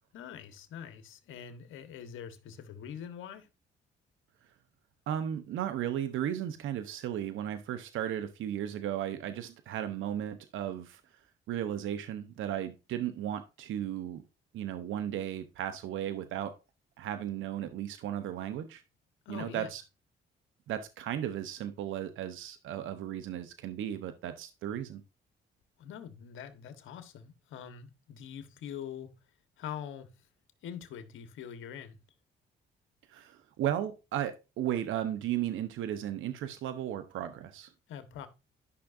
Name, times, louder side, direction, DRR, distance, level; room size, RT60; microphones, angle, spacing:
voice 1, 0.1-3.5 19.2-19.7 25.8-29.2 29.6-30.1 30.6-32.0 37.9-38.3, left 8 dB, 80° left, 1.3 m, -44 dB
voice 2, 5.1-11.0 11.5-14.2 14.5-16.5 17.0-18.8 19.3-19.8 20.7-25.0 33.1-37.7, right 11 dB, 80° right, 0.9 m, -35 dB
12.5 x 5.8 x 2.6 m
cardioid pair, 90°, 20 cm